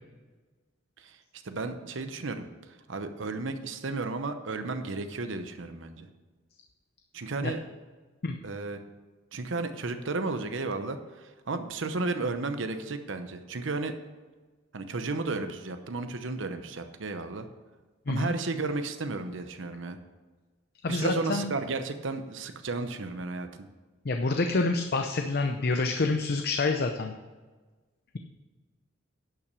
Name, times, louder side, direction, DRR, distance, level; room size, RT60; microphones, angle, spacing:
voice 1, 1.4-6.1 7.1-7.6 8.4-8.8 9.3-13.9 14.7-17.5 18.1-20.0 20.9-23.5, right 3 dB, 70° right, 8 dB, 0.8 m, -33 dB
voice 2, 20.8-21.5 24.0-27.1, left 3 dB, 55° left, 5 dB, 0.6 m, -27 dB
11.0 x 5.9 x 6.8 m, 1.3 s
head